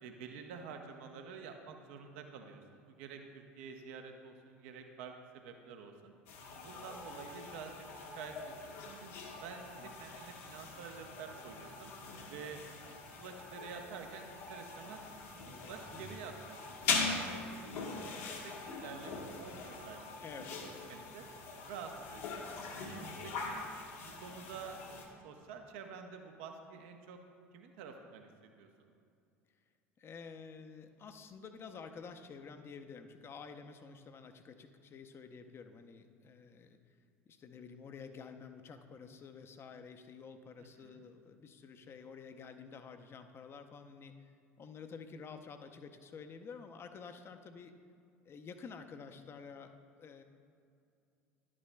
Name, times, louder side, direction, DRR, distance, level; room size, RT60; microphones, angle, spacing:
voice 1, 0.0-6.1 6.6-7.8 8.2-9.1 9.4-11.9 12.3-12.6 13.2-15.0 15.6-16.6 17.2-20.0 20.6-21.2 21.6-22.5 22.8-23.7 24.2-24.8 25.2-27.2 27.5-28.9 40.6-41.1, right 6 dB, 65° right, 4 dB, 0.8 m, -49 dB
sound 1, 6.3-25.1, left 4 dB, 70° left, 1.4 m, -42 dB
voice 2, 20.2-20.5 30.0-36.8 37.3-44.3 44.6-47.7 48.3-49.7 50.0-50.2, left 5 dB, 35° left, 7 dB, 0.6 m, -50 dB
11.0 x 8.5 x 2.2 m, 2.4 s
figure-of-eight pair, 70°, 7 cm